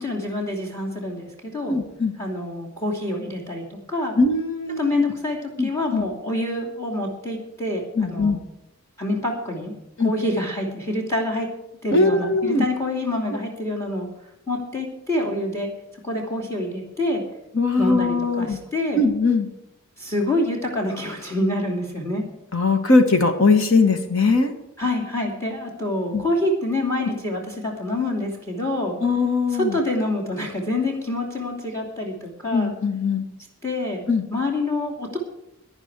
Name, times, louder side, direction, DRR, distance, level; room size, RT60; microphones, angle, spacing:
voice 1, 0.0-1.8 2.2-4.1 4.8-8.4 9.0-9.7 10.0-11.5 11.8-14.1 14.5-15.7 16.0-17.2 17.8-19.0 20.0-22.2 24.8-29.0 29.6-32.7 33.6-34.0 34.3-35.2, left 1 dB, 15° left, 0 dB, 2.7 m, -26 dB
voice 2, 1.7-2.1 4.2-5.0 5.6-6.0 8.0-8.4 10.0-10.1 11.9-12.6 13.3-13.4 17.5-18.6 18.9-19.5 22.5-24.5 26.1-26.2 27.0-27.1 29.0-29.8 32.5-33.3 34.1-34.2, left 3 dB, 65° left, 6 dB, 1.9 m, -20 dB
16.5 x 10.5 x 4.8 m, 0.89 s
head